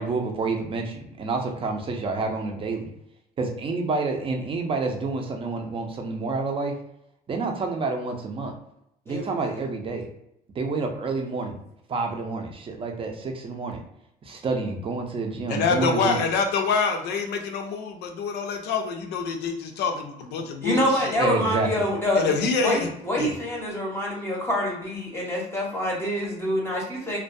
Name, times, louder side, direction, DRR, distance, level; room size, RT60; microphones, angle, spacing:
voice 1, 0.0-2.9 3.4-6.7 7.3-8.5 9.1-10.1 10.5-11.6 11.9-13.8 14.3-16.2 21.2-21.7, right 3 dB, 30° right, 3 dB, 0.5 m, -28 dB
voice 2, 9.1-9.6 20.6-22.3 22.6-27.2, equal, 15° left, -3 dB, 0.7 m, -26 dB
voice 3, 15.5-21.1 22.2-22.9 23.2-23.3, left 5 dB, 80° left, 4 dB, 0.5 m, -26 dB
2.2 x 2.2 x 2.5 m, 0.80 s
cardioid pair, 110°, 17 cm